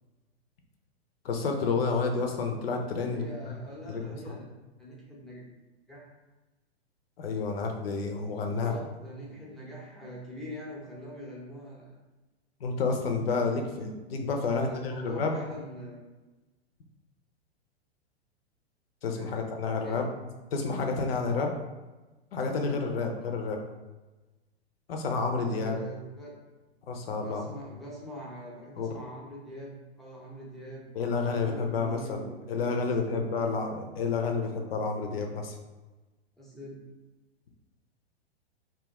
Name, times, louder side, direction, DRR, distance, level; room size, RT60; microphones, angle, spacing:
voice 1, 1.2-3.3 3.9-4.4 7.2-8.7 12.6-15.4 19.0-20.1 20.5-21.5 22.3-23.6 24.9-25.8 26.9-27.5 28.8-29.0 30.9-35.6, left 4 dB, 60° left, 3 dB, 0.7 m, -30 dB
voice 2, 2.9-4.5 4.8-5.5 5.9-6.1 8.4-11.9 14.3-16.0 19.1-19.3 19.8-20.0 25.5-26.3 27.2-33.6 36.4-36.8, equal, ahead, -6 dB, 0.8 m, -43 dB
2.8 x 2.4 x 4.0 m, 1.2 s
figure-of-eight pair, 105°, 33 cm